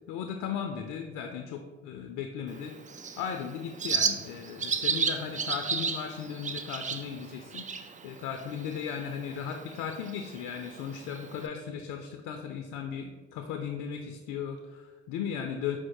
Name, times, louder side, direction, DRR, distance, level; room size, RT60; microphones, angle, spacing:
voice 1, 0.1-2.7 3.2-15.8, left 7 dB, 75° left, 5 dB, 0.5 m, -36 dB
Bird, 2.5-11.5, right 5 dB, 25° right, 0.4 m, -34 dB
5.0 x 2.0 x 4.6 m, 1.4 s
hypercardioid pair, 50°, 32 cm